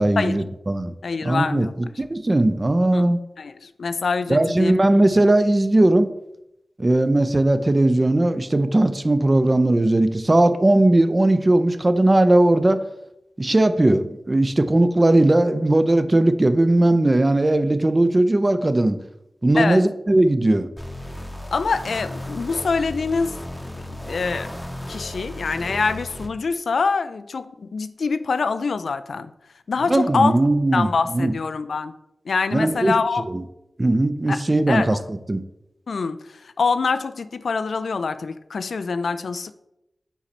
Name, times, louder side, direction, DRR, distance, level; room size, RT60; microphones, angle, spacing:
voice 1, 0.0-0.9 1.2-3.2 4.3-6.1 6.8-12.8 13.4-19.0 19.4-20.7 29.9-31.3 32.5-33.0 33.3-33.4 33.8-35.4, right 1 dB, 35° right, 0.5 m, -18 dB
voice 2, 1.0-1.7 2.9-4.8 19.5-19.9 21.5-23.4 24.0-24.6 24.9-29.3 29.7-30.4 30.7-32.0 32.3-33.3 34.3-35.0 35.9-39.5, left 4 dB, 80° left, 0.3 m, -25 dB
sound 1, 20.8-26.3, left 1 dB, 10° left, 0.8 m, -34 dB
5.7 x 4.2 x 4.2 m
cardioid pair, 45°, 0 cm